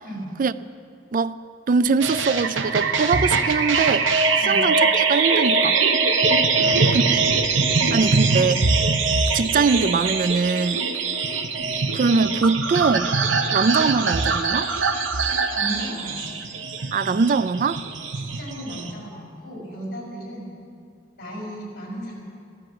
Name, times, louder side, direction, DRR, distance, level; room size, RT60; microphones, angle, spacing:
voice 1, 1.7-4.1 4.4-5.8 6.9-7.2 7.9-8.7 9.3-10.9 11.9-13.2 13.5-14.7 16.9-17.8, right 4 dB, 45° right, 0.4 m, -22 dB
sound 1, 2.0-18.9, right 4 dB, 85° right, 1.1 m, -22 dB
voice 2, 6.5-7.2 7.8-8.4 15.5-16.5 18.2-20.5 21.2-22.2, right 1 dB, 55° left, 5.3 m, -35 dB
14.5 x 13.0 x 7.9 m
head